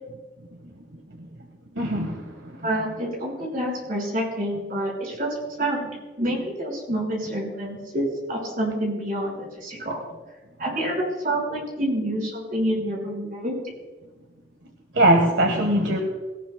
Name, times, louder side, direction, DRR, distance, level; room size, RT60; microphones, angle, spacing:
voice 1, 1.7-2.3 14.9-16.0, right 1 dB, 80° right, 3 dB, 1.4 m, -20 dB
voice 2, 2.6-10.0 10.6-13.6, right 1 dB, 50° right, -2 dB, 5.2 m, -28 dB
19.5 x 18.0 x 2.2 m, 1.2 s
head